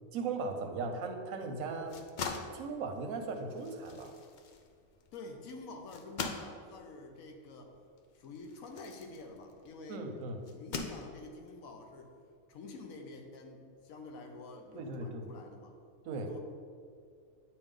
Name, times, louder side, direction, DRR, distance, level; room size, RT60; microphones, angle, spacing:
voice 1, 0.1-2.0 2.5-4.1 9.9-10.5 14.7-15.3 16.0-16.3, right 3 dB, 85° right, 5 dB, 1.1 m, -38 dB
sound 1, 1.7-9.8 10.4-11.5, left 4 dB, 65° left, 0.4 m, -43 dB
voice 2, 5.1-7.7 8.1-10.1 10.5-12.1 12.5-15.7 16.3-16.4, left 3 dB, 85° left, 3 dB, 1.2 m, -48 dB
8.6 x 4.4 x 3.8 m, 2.2 s
omnidirectional pair, 1.4 m